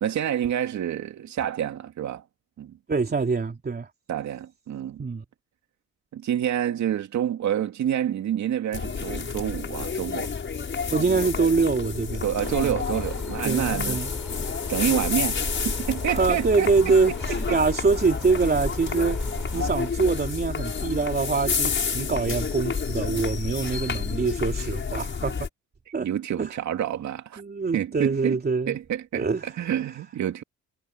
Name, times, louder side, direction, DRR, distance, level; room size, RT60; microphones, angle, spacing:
voice 1, 0.0-2.2 2.6-2.8 4.1-5.0 6.1-10.3 11.0-11.2 12.2-14.0 14.7-16.9 17.5-17.6 19.5-19.8 26.0-27.4 27.7-28.4 28.7-30.4, right 10 dB, 70° right, 2.5 m, -28 dB
voice 2, 2.9-3.9 5.0-5.2 10.9-12.3 12.6-12.8 13.4-14.1 16.1-19.2 19.5-25.5 25.9-26.1 26.4-26.5 27.4-28.8 29.1-29.4, right 4 dB, 30° right, 3.3 m, -24 dB
sound 1, 8.7-25.5, left 5 dB, 40° left, 6.1 m, -29 dB
sound 2, 12.4-19.9, equal, ahead, 6.1 m, -37 dB
cardioid pair, 90°, 30 cm